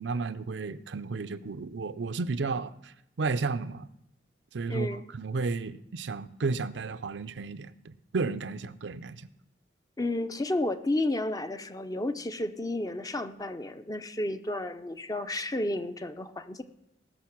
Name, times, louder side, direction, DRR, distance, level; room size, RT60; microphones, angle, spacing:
voice 1, 0.0-3.9 4.5-9.3, right 4 dB, 70° right, 0.5 m, -33 dB
voice 2, 4.7-5.0 10.0-16.6, left 1 dB, 20° left, 0.6 m, -32 dB
19.5 x 6.4 x 6.0 m
head